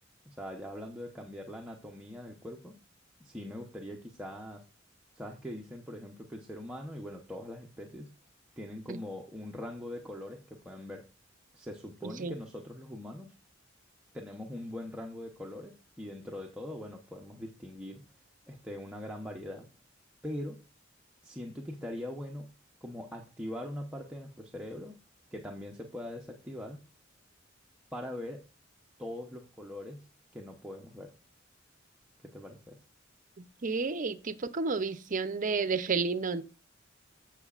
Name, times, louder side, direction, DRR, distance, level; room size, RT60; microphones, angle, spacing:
voice 1, 0.2-2.7 3.2-4.6 5.2-8.1 8.6-11.0 11.5-13.3 14.1-18.0 18.5-19.7 20.2-20.6 21.2-22.5 22.8-25.0 25.3-26.8 27.9-28.4 29.0-30.1 30.3-31.1 32.2-32.8, left 1 dB, 5° right, 0.8 m, -42 dB
voice 2, 12.0-12.3 33.4-36.4, right 4 dB, 45° right, 0.6 m, -31 dB
15.5 x 5.8 x 2.4 m
head